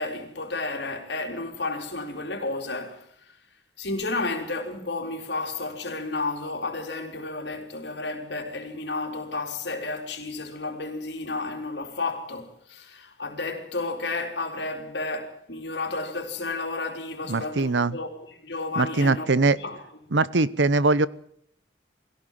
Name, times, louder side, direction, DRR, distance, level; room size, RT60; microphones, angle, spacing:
voice 1, 0.0-3.0 3.8-19.3 19.6-19.8, left 3 dB, 75° left, 4.1 m, -32 dB
voice 2, 17.3-18.0 18.8-19.6 20.1-21.1, right 3 dB, 85° right, 0.9 m, -21 dB
21.0 x 16.5 x 7.6 m
head